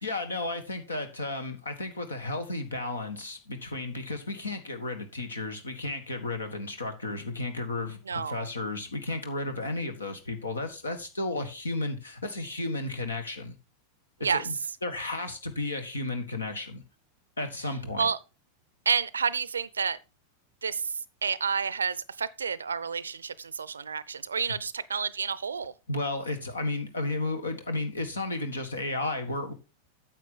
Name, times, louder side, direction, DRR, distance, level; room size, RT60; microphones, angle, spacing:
voice 1, 0.0-13.5 14.3-14.5 14.8-16.8 17.4-18.1 24.3-24.5 25.9-29.5, left 2 dB, 75° left, 1.6 m, -33 dB
voice 2, 8.1-8.5 14.2-14.4 18.0-18.2 18.9-20.0 20.6-20.8 21.2-25.7, right 6 dB, 70° right, 0.5 m, -29 dB
9.2 x 7.5 x 3.7 m
figure-of-eight pair, 90°, 0 cm